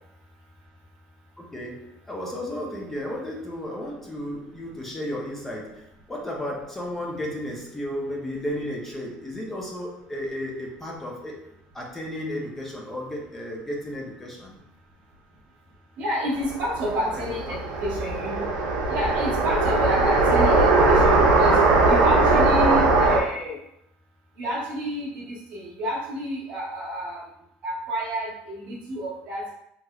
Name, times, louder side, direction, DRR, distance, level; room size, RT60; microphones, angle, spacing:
voice 1, 1.4-11.4 11.7-14.6 17.0-17.6, left 1 dB, 10° left, -1 dB, 0.5 m, -33 dB
voice 2, 16.0-18.5 18.9-23.6 24.4-27.2 27.6-29.5, equal, 45° right, -4 dB, 0.9 m, -29 dB
sound 1, 16.4-23.2, right 3 dB, 80° right, 0.6 m, -20 dB
2.9 x 2.9 x 2.2 m, 0.76 s
cardioid pair, 180°, 3 cm